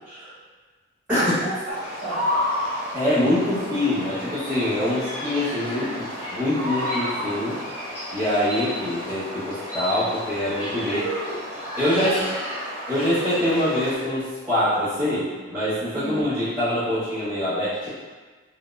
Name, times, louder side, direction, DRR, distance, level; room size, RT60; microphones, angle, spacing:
voice 1, 1.1-1.8 2.0-2.3 5.3-6.1 8.1-8.5 10.9-11.5 11.9-12.3 15.9-16.3, right 2 dB, 35° right, -11 dB, 1.4 m, -33 dB
sound 1, 1.7-14.0, equal, 30° left, 1.2 m, -31 dB
voice 2, 2.9-7.6 8.1-11.0 11.8-12.2 12.9-17.9, left 1 dB, 10° right, -17 dB, 1.1 m, -24 dB
3.8 x 2.3 x 2.3 m, 1.4 s
head